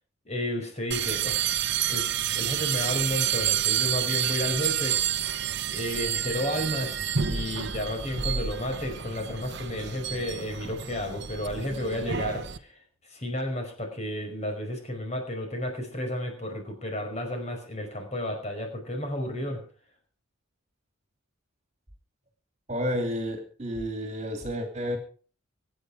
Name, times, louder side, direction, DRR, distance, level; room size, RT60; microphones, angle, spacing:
voice 1, 0.3-1.5 1.9-5.0 5.7-7.0 7.3-12.7 13.1-19.6, left 1 dB, 30° left, 4 dB, 5.1 m, -32 dB
sound 1, 0.9-12.6, right 9 dB, 55° right, 1.0 m, -29 dB
voice 2, 22.7-25.0, equal, 30° right, 5 dB, 2.7 m, -31 dB
24.5 x 9.1 x 4.9 m, 0.41 s
head